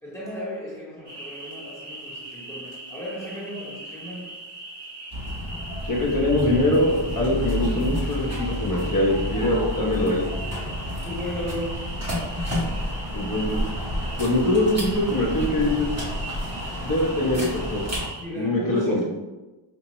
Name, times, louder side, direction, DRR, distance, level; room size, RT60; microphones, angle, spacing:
voice 1, 0.0-4.4 8.1-9.7 11.0-11.9 18.2-19.0, equal, 5° left, -7 dB, 1.0 m, -35 dB
sound 1, 1.0-18.2, right 1 dB, 60° right, 1.5 m, -40 dB
sound 2, 5.1-18.1, left 1 dB, 35° right, 1.0 m, -30 dB
voice 2, 5.8-10.2 13.1-13.6 14.2-15.9 16.8-18.0 18.4-19.0, left 1 dB, 45° left, -3 dB, 0.9 m, -23 dB
5.3 x 2.1 x 2.9 m, 1.1 s
wide cardioid pair, 140°, 47 cm